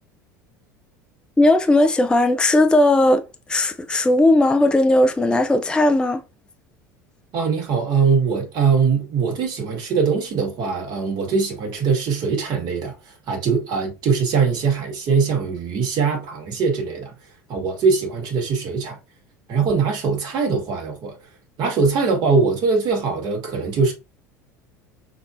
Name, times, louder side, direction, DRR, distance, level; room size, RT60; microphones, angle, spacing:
voice 1, 1.4-3.2 3.5-6.2, left 1 dB, 10° left, 0.5 m, -17 dB
voice 2, 7.3-17.1 17.5-19.0 19.5-21.2 21.6-23.9, right 5 dB, 50° right, 1.9 m, -21 dB
5.9 x 2.8 x 2.5 m
hypercardioid pair, 80°, 9 cm